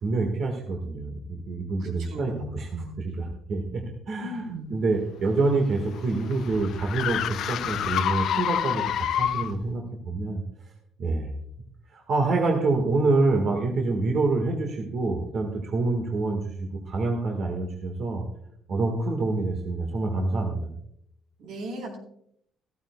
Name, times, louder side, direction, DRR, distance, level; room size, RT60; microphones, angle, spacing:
voice 1, 0.0-2.7 3.0-4.4 4.7-10.4 11.0-11.3 11.9-18.2 18.7-20.7, right 3 dB, 45° right, 1 dB, 1.6 m, -26 dB
voice 2, 1.8-2.9 4.2-4.7 21.4-22.0, right 1 dB, 75° right, 1 dB, 3.7 m, -37 dB
sound 1, 5.2-9.7, left 10 dB, 60° left, 0.5 m, -28 dB
15.0 x 14.0 x 2.3 m, 0.71 s
cardioid pair, 155°, 0 cm